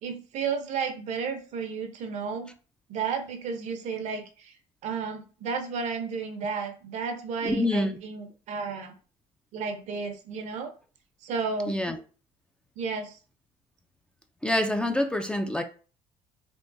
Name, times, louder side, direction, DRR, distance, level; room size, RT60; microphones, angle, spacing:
voice 1, 0.0-2.5 2.9-4.5 4.8-9.0 9.5-10.7 11.2-11.8 12.8-13.2, right 5 dB, 60° right, 0.7 m, -32 dB
voice 2, 7.4-8.0 11.7-12.0 14.4-15.6, left 1 dB, 5° left, 0.4 m, -26 dB
3.6 x 2.5 x 2.6 m
cardioid pair, 105°, 13 cm